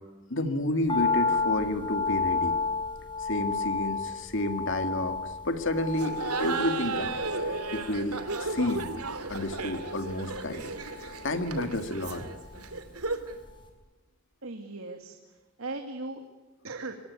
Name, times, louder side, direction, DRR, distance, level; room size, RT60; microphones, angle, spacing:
voice 1, 0.3-2.6 3.2-7.2 7.7-8.9 9.3-12.3, left 1 dB, 55° left, 8 dB, 2.2 m, -31 dB
sound 1, 0.9-13.2 13.4-13.5, left 4 dB, 20° left, 5.5 m, -32 dB
Laughter, 5.9-13.4, right 3 dB, 85° right, 2.7 m, -34 dB
voice 2, 14.4-16.2 16.6-16.9, right 3 dB, 65° right, 4 dB, 2.4 m, -38 dB
25.0 x 22.5 x 9.6 m, 1.2 s
head